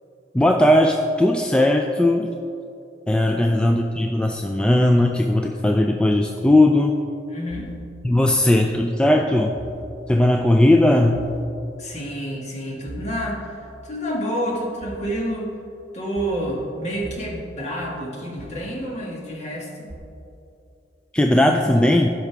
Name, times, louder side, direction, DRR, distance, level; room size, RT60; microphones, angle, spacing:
voice 1, 0.3-2.3 3.1-7.0 8.0-9.5 10.1-11.2 21.1-22.1, left 1 dB, 5° left, 2 dB, 0.3 m, -18 dB
voice 2, 3.2-3.9 7.3-7.7 8.3-9.0 11.8-15.5 15.9-19.9 21.3-21.9, equal, 40° left, -3 dB, 1.7 m, -29 dB
sound 1, 7.5-7.8 9.6-9.9 11.1-11.5 12.9-13.2 14.8-15.1 16.2-16.4 17.0-17.3 18.4-18.7 19.9-20.0, right 2 dB, 25° right, 1.3 m, -38 dB
15.5 x 5.9 x 3.4 m, 2.7 s
head